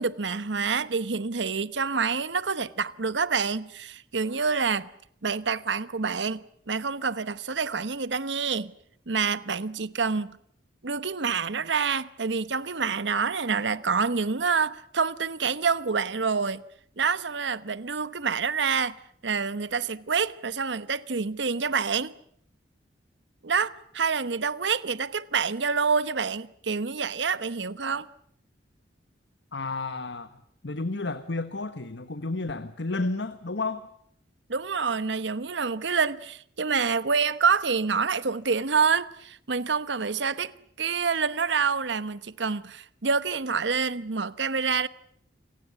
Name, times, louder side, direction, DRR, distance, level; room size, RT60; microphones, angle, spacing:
voice 1, 0.0-4.9 5.2-8.7 9.1-10.4 10.8-16.6 17.0-19.0 19.2-22.1 23.4-28.1 34.5-40.5 40.8-44.9, right 5 dB, 80° right, 1.0 m, -27 dB
voice 2, 29.5-33.9, left 3 dB, 75° left, 1.3 m, -32 dB
28.5 x 18.5 x 9.6 m
head